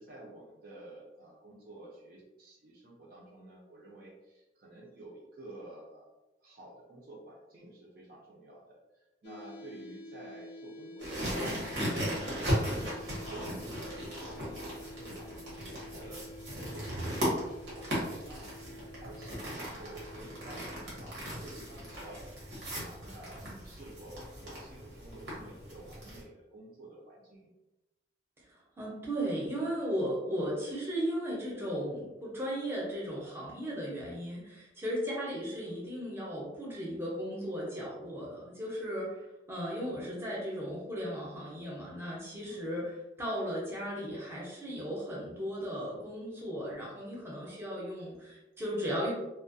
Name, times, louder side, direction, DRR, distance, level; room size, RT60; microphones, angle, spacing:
voice 1, 0.0-6.1 6.4-8.8 9.2-12.6 13.2-15.4 15.8-16.2 16.5-17.9 18.1-18.5 19.0-27.5 35.7-35.8 42.4-42.6, right 1 dB, 55° right, -4 dB, 0.5 m, -50 dB
sound 1, 9.2-23.2, left 1 dB, 70° left, 0.3 m, -50 dB
sound 2, 11.0-26.2, equal, 85° right, 1.0 m, -37 dB
voice 2, 28.5-49.1, equal, 15° right, -5 dB, 0.7 m, -36 dB
2.3 x 2.1 x 2.5 m, 0.98 s
head